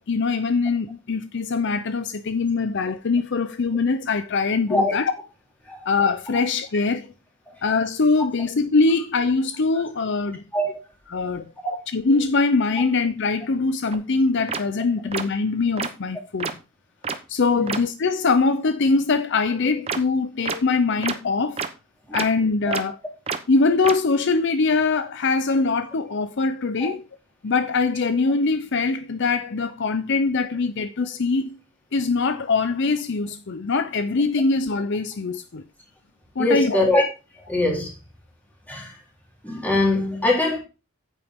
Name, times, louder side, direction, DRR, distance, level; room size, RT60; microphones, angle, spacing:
voice 1, 0.1-5.1 5.9-7.1 7.6-10.4 11.1-11.5 11.9-16.5 17.3-21.6 22.1-22.9 23.5-27.0 27.4-31.6 31.9-35.6 36.4-36.8, left 4 dB, 55° left, 0.6 m, -22 dB
sound 1, 13.9-14.0 14.5-14.6 15.1-15.2 15.8-15.9 16.4-16.5 17.0-17.1 17.7-17.8 19.9-20.0 20.4-20.6 21.0-21.1 21.6-21.7 22.1-22.2 22.7-22.8 23.3-23.4 23.8-23.9, right 5 dB, 30° right, 0.8 m, -26 dB
voice 2, 36.4-37.0 37.5-37.9 38.7-38.9 39.4-40.6, left 1 dB, 10° left, 3.6 m, -22 dB
9.0 x 8.9 x 3.6 m
head